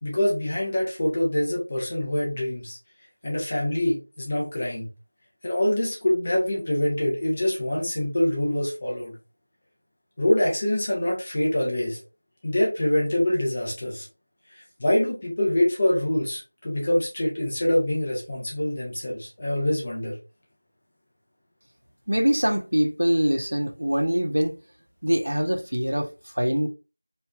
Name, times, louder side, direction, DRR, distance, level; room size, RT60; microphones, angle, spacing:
voice 1, 0.0-2.8 3.2-4.9 5.4-9.1 10.2-12.0 12.4-14.1 14.8-20.2, left 1 dB, 20° left, 0.9 m, -25 dB
voice 2, 22.1-24.5 25.0-26.1 26.4-26.7, equal, 75° right, 0.7 m, -23 dB
3.1 x 2.6 x 2.3 m
figure-of-eight pair, 180°, 0 cm